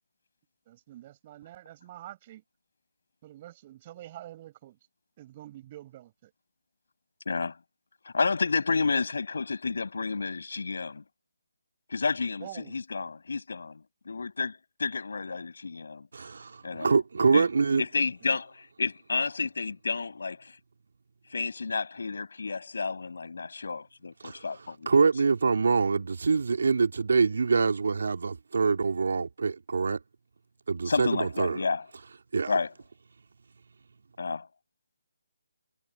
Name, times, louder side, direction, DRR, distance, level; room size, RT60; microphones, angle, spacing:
voice 1, 0.7-2.4 3.2-4.8 5.2-6.3 12.4-12.8 17.2-17.6, right 14 dB, 30° right, 6.6 m, -47 dB
voice 2, 7.3-7.6 8.0-11.0 11.9-16.1 16.6-16.9 17.3-17.5 17.8-20.6 21.3-24.9 30.8-31.9 32.5-32.7 34.2-34.5, left 4 dB, 65° left, 5.5 m, -31 dB
voice 3, 16.1-17.8 24.2-24.4 24.9-30.0 30.7-31.6 32.3-32.5, right 4 dB, 65° right, 2.4 m, -25 dB
figure-of-eight pair, 150°, 0 cm